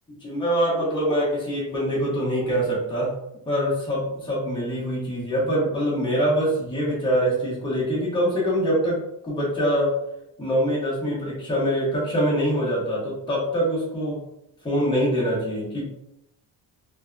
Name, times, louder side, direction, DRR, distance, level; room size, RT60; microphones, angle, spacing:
voice 1, 0.2-3.1 3.5-9.9 10.4-14.2 14.6-15.8, equal, 10° left, -7 dB, 0.8 m, -24 dB
2.6 x 2.4 x 2.2 m, 0.84 s
wide cardioid pair, 175°, 44 cm